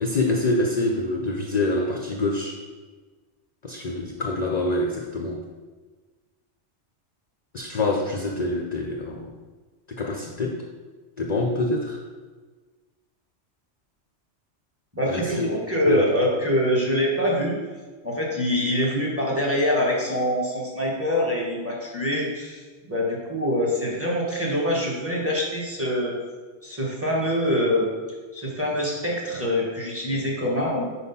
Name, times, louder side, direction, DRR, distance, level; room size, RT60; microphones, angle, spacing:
voice 1, 0.0-2.6 3.6-5.4 7.5-9.3 9.9-10.6 11.2-12.0 15.0-15.5 15.9-16.1, left 2 dB, 50° left, 1 dB, 0.5 m, -26 dB
voice 2, 14.9-17.6 18.0-22.6 22.9-26.2 26.6-27.9 28.3-30.9, equal, 10° right, -2 dB, 1.0 m, -24 dB
4.7 x 4.2 x 5.4 m, 1.4 s
omnidirectional pair, 1.2 m